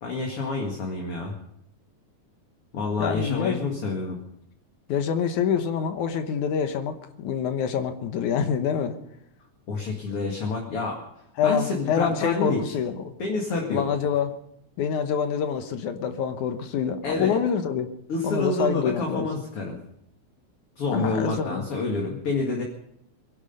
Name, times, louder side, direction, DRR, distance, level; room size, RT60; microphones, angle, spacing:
voice 1, 0.0-1.3 2.7-4.2 9.7-11.0 11.4-12.6 13.2-13.9 17.0-17.4 18.1-19.8 20.8-22.6, left 3 dB, 50° left, 0 dB, 2.8 m, -28 dB
voice 2, 3.0-3.8 4.9-9.0 11.4-13.1 13.7-14.3 14.8-17.9 18.2-19.4 20.9-21.7, left 7 dB, 85° left, 8 dB, 2.6 m, -26 dB
23.0 x 11.5 x 5.4 m, 0.75 s
omnidirectional pair, 3.4 m